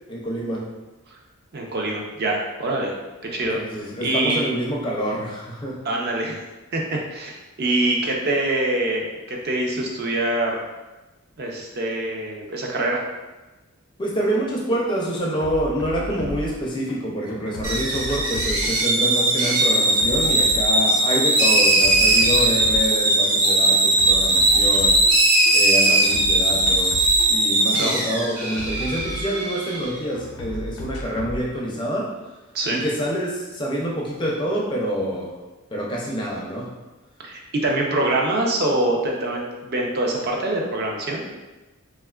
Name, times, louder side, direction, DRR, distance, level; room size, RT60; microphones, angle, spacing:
voice 1, 0.1-0.7 3.4-5.8 14.0-25.0 25.5-32.1 32.7-35.4 35.7-36.8, equal, 20° left, -2 dB, 0.4 m, -27 dB
voice 2, 1.5-2.9 3.3-3.6 4.0-4.5 5.8-6.4 6.7-10.6 11.4-13.0 16.1-16.4 24.7-24.8 27.7-27.9 32.5-32.8 37.2-41.3, right 2 dB, 45° right, 0 dB, 0.4 m, -24 dB
sound 1, 14.3-14.5 14.7-17.0 17.3-21.3 21.6-23.0 23.3-25.6 25.9-29.8 30.1-31.4, left 1 dB, 85° left, 0.4 m, -35 dB
sound 2, 17.6-29.9, right 2 dB, 85° right, 0.6 m, -19 dB
3.5 x 2.2 x 2.3 m, 1.1 s
head